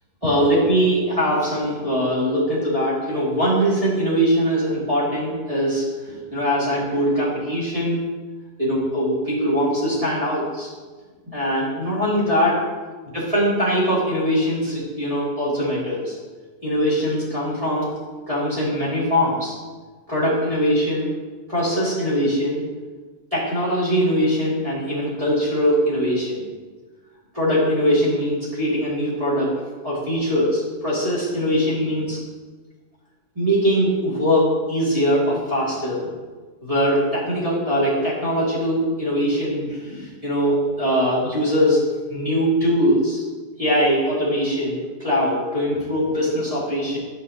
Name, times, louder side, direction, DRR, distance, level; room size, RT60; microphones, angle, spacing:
voice 1, 0.2-8.0 8.6-10.7 11.3-12.5 13.1-16.1 16.6-17.9 18.3-19.5 20.1-21.1 21.5-22.6 23.3-26.4 27.3-29.5 29.8-32.2 33.4-36.1 36.6-41.8 42.1-43.2 43.6-47.0, equal, 25° right, -9 dB, 2.4 m, -21 dB
11.5 x 5.7 x 2.9 m, 1.4 s
omnidirectional pair, 1.3 m